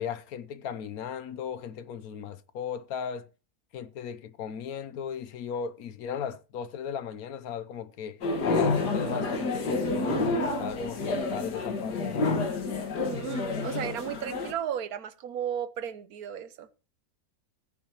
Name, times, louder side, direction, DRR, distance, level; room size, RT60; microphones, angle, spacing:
voice 1, 0.0-3.3 3.7-12.4, left 7 dB, 70° left, 1.1 m, -37 dB
sound 1, 8.2-14.5, left 3 dB, 85° left, 2.2 m, -29 dB
voice 2, 13.0-16.7, right 9 dB, 70° right, 1.2 m, -34 dB
17.0 x 9.6 x 2.9 m
omnidirectional pair, 1.7 m